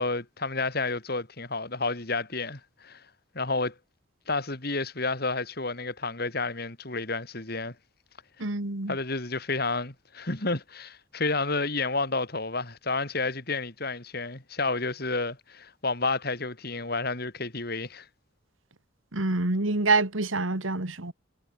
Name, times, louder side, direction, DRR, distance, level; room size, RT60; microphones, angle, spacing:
voice 1, 0.0-3.0 3.3-3.7 4.3-7.7 8.9-18.1, left 3 dB, 50° left, 3.4 m, -30 dB
voice 2, 8.4-9.0 19.1-21.1, right 3 dB, 90° right, 2.4 m, -26 dB
head